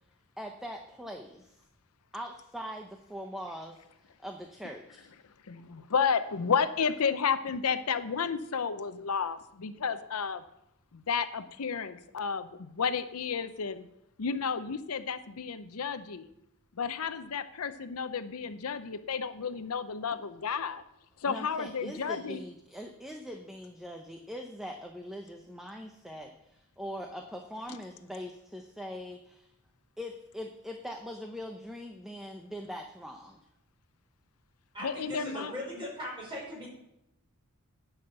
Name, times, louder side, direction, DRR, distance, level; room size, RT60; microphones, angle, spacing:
voice 1, 0.4-1.6 2.1-3.8 4.2-5.1 21.3-29.5 30.0-33.4, equal, ahead, 2 dB, 0.7 m, -42 dB
voice 2, 5.5-10.4 10.9-13.9 14.2-16.3 16.8-20.8 21.2-22.4 34.8-35.5, left 6 dB, 75° left, 11 dB, 0.6 m, -32 dB
voice 3, 34.7-36.7, left 1 dB, 25° right, -3 dB, 5.3 m, -39 dB
10.0 x 5.7 x 8.0 m, 0.82 s
head